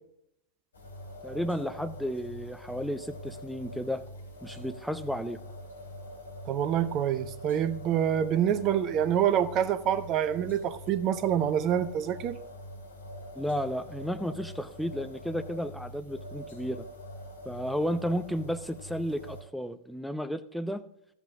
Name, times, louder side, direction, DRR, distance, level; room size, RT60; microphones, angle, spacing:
sound 1, 0.7-19.4, equal, 70° left, 2.2 m, -44 dB
voice 1, 1.2-4.0 4.4-5.4 13.4-16.9 17.4-20.8, equal, ahead, 0.6 m, -33 dB
voice 2, 6.5-12.4, right 9 dB, 35° right, 0.6 m, -26 dB
13.5 x 8.1 x 3.5 m
figure-of-eight pair, 90°, 0 cm